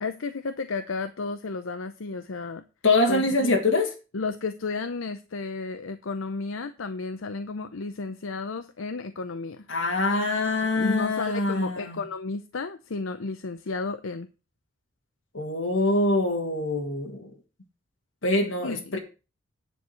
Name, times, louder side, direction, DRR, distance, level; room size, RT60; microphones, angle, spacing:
voice 1, 0.0-2.6 3.1-3.6 4.1-9.6 10.8-14.3 18.6-19.0, left 3 dB, 90° left, 10 dB, 0.7 m, -33 dB
voice 2, 2.8-3.9 9.7-12.0 15.3-17.3 18.2-19.0, left 2 dB, 70° left, 2 dB, 1.9 m, -24 dB
9.9 x 4.7 x 7.7 m, 0.32 s
head